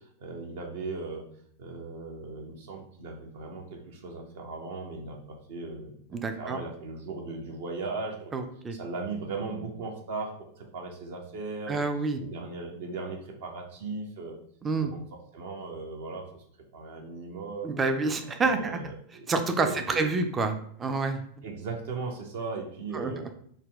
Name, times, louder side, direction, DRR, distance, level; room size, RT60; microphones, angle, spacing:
voice 1, 0.2-1.2 1.6-5.2 5.5-5.9 6.4-8.3 8.8-10.3 10.7-11.9 12.2-14.4 14.8-15.0 15.3-16.2 16.7-17.9 18.4-19.3 19.6-20.3 21.4-23.2, right 3 dB, 55° right, 3 dB, 0.7 m, -37 dB
voice 2, 6.1-6.6 8.3-8.8 11.7-12.2 14.6-14.9 17.6-18.8 19.3-20.5 20.8-21.4 22.9-23.1, right 3 dB, 20° right, 7 dB, 0.4 m, -28 dB
4.0 x 2.2 x 3.3 m, 0.64 s
figure-of-eight pair, 90°, 0 cm